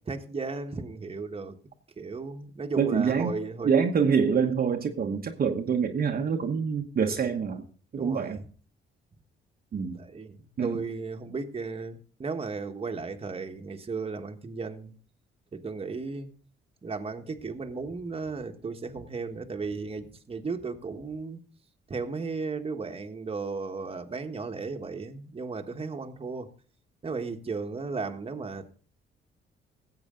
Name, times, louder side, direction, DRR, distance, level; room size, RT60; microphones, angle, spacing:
voice 1, 0.1-1.5 2.0-3.7 8.0-8.4 10.0-14.9 15.5-16.3 16.8-21.4 21.9-26.5 27.0-28.7, right 4 dB, 30° right, 1.4 m, -35 dB
voice 2, 2.8-3.3 3.6-7.6 7.9-8.4 9.7-10.0 10.6-10.8, right 6 dB, 45° right, 1.1 m, -26 dB
15.5 x 8.0 x 3.8 m
cardioid pair, 90°, 20 cm